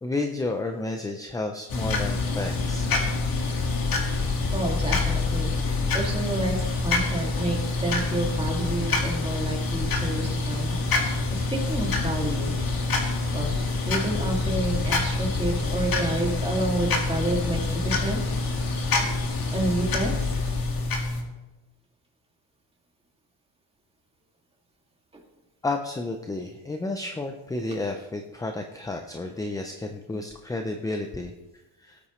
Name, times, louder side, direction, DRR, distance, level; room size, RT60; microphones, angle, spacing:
voice 1, 0.0-2.9 25.6-31.3 31.8-32.0, left 2 dB, 10° left, 4 dB, 0.4 m, -31 dB
sound 1, 1.7-21.2, left 3 dB, 45° left, 1.9 m, -26 dB
voice 2, 4.5-10.8 11.3-12.5 13.3-18.2 19.5-20.2, right 2 dB, 10° right, -1 dB, 2.3 m, -29 dB
17.5 x 8.5 x 3.1 m, 1.1 s
cardioid pair, 140°, 48 cm